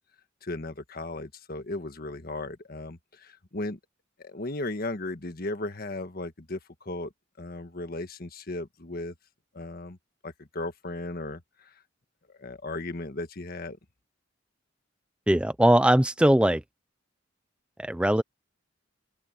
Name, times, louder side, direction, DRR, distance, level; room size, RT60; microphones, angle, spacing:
voice 1, 0.4-3.8 4.2-7.1 7.4-9.1 9.5-10.0 10.2-11.7 12.4-13.8, left 2 dB, 50° left, 1.6 m, -36 dB
voice 2, 15.3-16.6 17.8-18.2, right 1 dB, 5° right, 0.4 m, -20 dB
open air
head